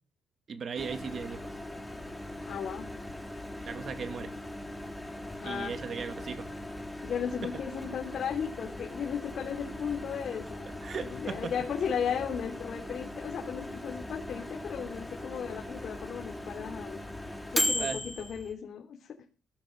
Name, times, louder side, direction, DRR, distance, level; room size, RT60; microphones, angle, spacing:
voice 1, 0.5-1.5 3.6-4.3 5.4-6.5 7.4-7.5 10.8-11.5 17.8-18.0, right 6 dB, 50° right, 2.5 m, -37 dB
Microwave oven, 0.8-18.5, left 1 dB, 5° left, 4.0 m, -38 dB
voice 2, 2.4-2.9 5.4-5.7 7.0-17.0 17.5-19.2, left 7 dB, 60° left, 3.4 m, -35 dB
18.0 x 13.0 x 5.4 m
cardioid pair, 90°, 0 cm